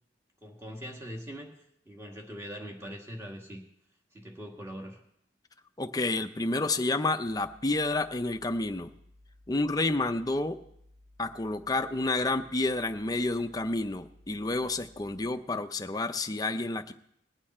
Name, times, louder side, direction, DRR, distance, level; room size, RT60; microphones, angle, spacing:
voice 1, 0.4-1.5 1.9-3.6 4.1-5.0, equal, 15° right, 0 dB, 1.9 m, -42 dB
voice 2, 5.8-8.9 9.5-10.6 11.2-16.9, left 2 dB, 20° left, 7 dB, 0.6 m, -29 dB
sound 1, 7.2-15.3, left 1 dB, 50° right, 3.3 m, -58 dB
20.0 x 8.7 x 4.3 m, 0.74 s
head